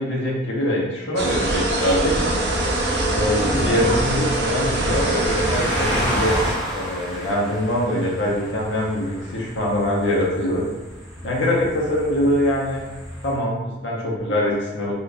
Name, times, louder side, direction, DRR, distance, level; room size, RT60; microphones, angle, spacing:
voice 1, 0.0-2.1 3.1-6.4 6.7-10.6 11.2-12.8 13.2-14.9, left 1 dB, 85° left, -3 dB, 0.8 m, -23 dB
sound 1, 1.2-6.6, right 1 dB, 70° right, 0.5 m, -23 dB
sound 2, 2.1-13.3, equal, ahead, 0.6 m, -32 dB
2.5 x 2.4 x 3.3 m, 1.1 s
head